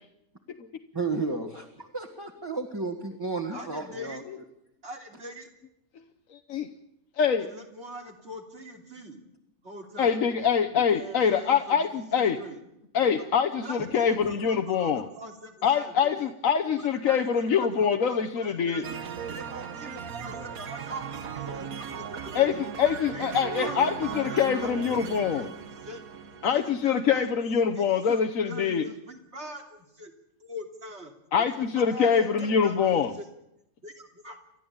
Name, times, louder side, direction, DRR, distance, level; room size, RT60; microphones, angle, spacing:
voice 1, 0.9-4.2, right 3 dB, 15° right, 1 dB, 2.0 m, -32 dB
voice 2, 3.5-4.2 4.8-5.5 7.4-9.2 9.6-10.2 10.9-12.6 13.6-14.2 14.5-15.9 17.0-17.7 18.1-19.0 19.3-22.6 23.1-26.0 26.5-27.3 27.8-27.9 28.1-28.2 28.5-30.1 30.4-31.1 31.4-33.3 33.8-34.4, equal, 50° right, 2 dB, 3.3 m, -42 dB
voice 3, 6.3-6.7 7.2-7.5 10.0-12.4 12.9-15.1 15.6-18.9 22.3-25.5 26.4-28.9 31.3-33.1, left 7 dB, 70° left, 6 dB, 1.4 m, -24 dB
sound 1, 18.8-27.4, right 7 dB, 85° right, 1.6 m, -38 dB
30.0 x 13.0 x 8.7 m, 0.84 s
omnidirectional pair, 1.5 m